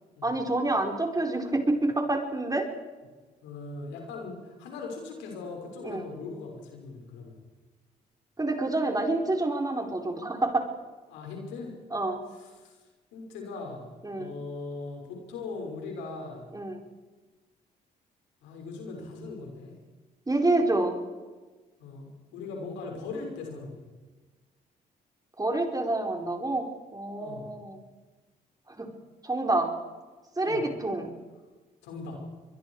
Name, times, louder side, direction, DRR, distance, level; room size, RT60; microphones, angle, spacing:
voice 1, 0.2-2.7 5.8-6.0 8.4-10.7 11.9-12.2 14.0-14.3 16.5-16.8 20.3-20.9 25.4-26.7 26.9-27.8 28.7-28.9 29.2-29.7 30.4-31.1, right 2 dB, 20° right, 3 dB, 4.7 m, -27 dB
voice 2, 3.4-7.4 11.1-11.7 12.3-12.8 13.1-13.9 14.1-16.5 18.4-19.7 21.8-22.1 22.3-23.8 27.2-27.5 30.4-30.6 31.8-32.2, left 3 dB, 90° left, 1 dB, 5.8 m, -39 dB
24.5 x 21.5 x 4.9 m, 1.3 s
supercardioid pair, 60°, 19 cm